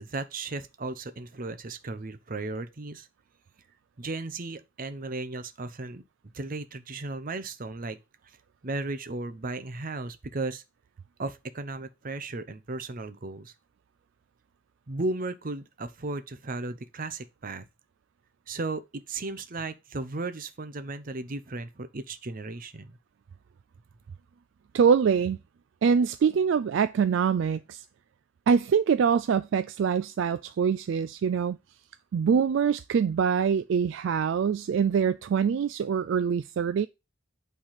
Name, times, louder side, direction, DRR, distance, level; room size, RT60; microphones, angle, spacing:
voice 1, 0.0-3.1 4.0-6.0 6.3-8.0 8.6-10.6 11.2-13.5 14.9-17.7 18.5-23.0, right 2 dB, 40° right, 0.7 m, -35 dB
voice 2, 24.7-25.4 25.8-27.8 28.5-31.6 32.1-36.9, right 6 dB, 60° right, 0.3 m, -24 dB
8.8 x 3.5 x 5.7 m
head